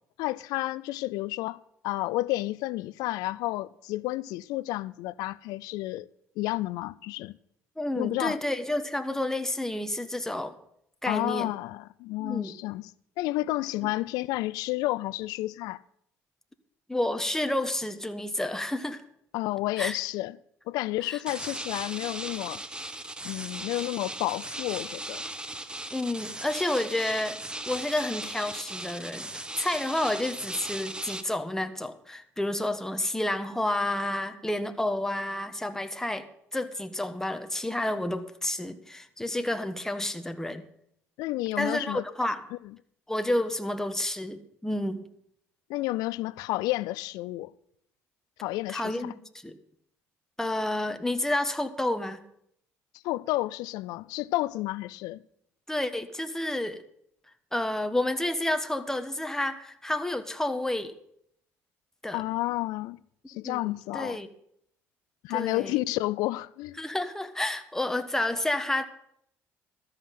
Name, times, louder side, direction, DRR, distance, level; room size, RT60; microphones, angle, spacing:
voice 1, 0.2-6.1 6.4-7.3 8.0-8.4 11.1-12.9 13.2-15.8 19.3-20.4 20.7-22.6 23.2-25.2 41.2-42.0 42.5-42.7 45.7-47.5 48.4-49.1 53.0-55.2 62.1-63.0 63.3-64.2 65.2-66.8, left 18 dB, 75° left, 0.4 m, -31 dB
voice 2, 7.8-10.5 11.0-11.5 12.2-12.5 13.8-13.9 16.9-19.0 19.8-20.0 21.0-21.2 25.9-40.6 41.6-42.4 43.1-45.0 48.7-49.5 50.4-52.2 55.7-56.8 57.5-60.9 62.0-62.2 63.4-64.3 65.3-65.8 66.8-68.9, left 1 dB, 5° left, 1.3 m, -30 dB
sound 1, 21.3-31.2, right 1 dB, 15° right, 1.1 m, -38 dB
13.5 x 5.7 x 9.2 m
supercardioid pair, 65°, 7 cm